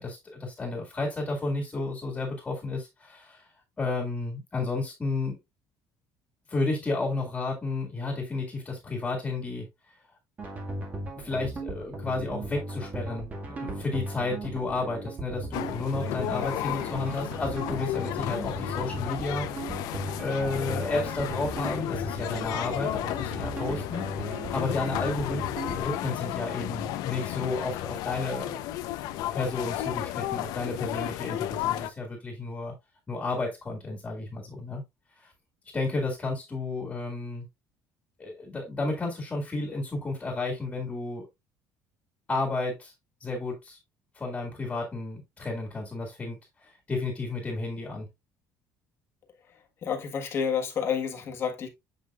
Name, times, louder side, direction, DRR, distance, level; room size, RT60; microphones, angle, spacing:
voice 1, 0.0-3.5 3.8-5.4 6.5-9.9 11.2-19.8 20.2-28.6 29.3-32.7 33.1-34.8 35.2-35.3 35.7-37.5 38.2-41.3 42.3-42.9 43.2-43.8 44.1-48.1, left 3 dB, 15° left, 2.0 m, -32 dB
sound 1, 10.4-25.8, right 2 dB, 25° right, 1.8 m, -37 dB
sound 2, 15.5-31.9, left 13 dB, 70° left, 0.7 m, -33 dB
voice 2, 49.8-51.7, left 7 dB, 40° left, 1.4 m, -29 dB
8.3 x 5.2 x 2.4 m
cardioid pair, 155°, 7 cm